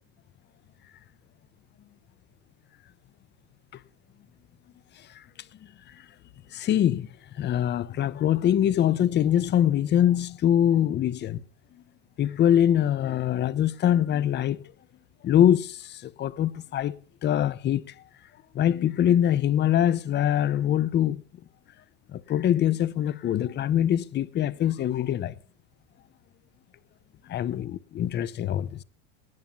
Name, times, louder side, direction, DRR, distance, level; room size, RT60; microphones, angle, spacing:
voice 1, 6.5-7.1 7.4-11.4 12.2-14.6 15.2-17.9 18.5-21.2 22.1-25.3 27.3-28.8, left 10 dB, 30° left, 0.8 m, -23 dB
18.5 x 7.4 x 7.1 m
supercardioid pair, 115°, 33 cm